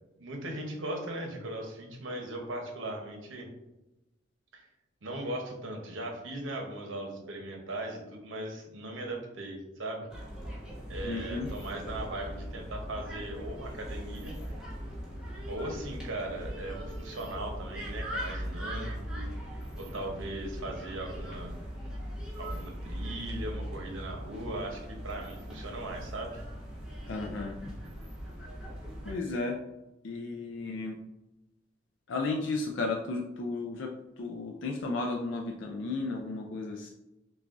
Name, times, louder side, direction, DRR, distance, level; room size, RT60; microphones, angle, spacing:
voice 1, 0.2-3.5 4.5-4.7 5.0-10.1 10.9-14.3 15.5-19.2 19.8-21.5 22.4-26.4, right 1 dB, 85° right, 2 dB, 0.9 m, -38 dB
sound 1, 10.1-29.2, equal, 5° right, 0.9 m, -40 dB
voice 2, 11.0-11.5 27.1-27.6 29.0-29.6 30.0-31.0 32.1-36.9, left 3 dB, 65° left, 1 dB, 0.4 m, -34 dB
6.0 x 2.3 x 2.6 m, 0.98 s
head